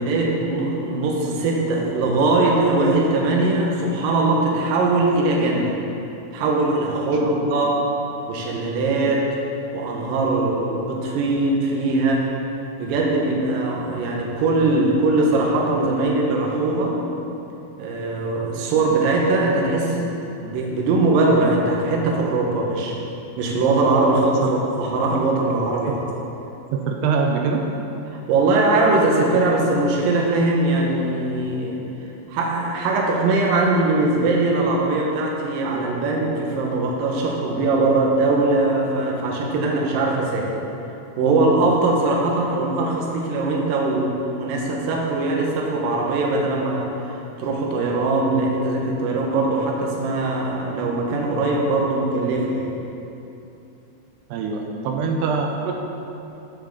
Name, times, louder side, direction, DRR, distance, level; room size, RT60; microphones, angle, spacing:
voice 1, 0.0-5.7 6.3-7.8 8.3-9.3 9.7-12.3 12.8-17.0 17.8-20.1 20.4-23.0 23.4-26.0 28.1-31.8 32.3-40.5 41.2-52.7, right 2 dB, 65° right, -1 dB, 2.6 m, -21 dB
voice 2, 26.7-27.6 54.3-55.7, right 5 dB, 85° right, 1 dB, 2.8 m, -23 dB
7.5 x 7.1 x 6.9 m, 2.9 s
omnidirectional pair, 4.8 m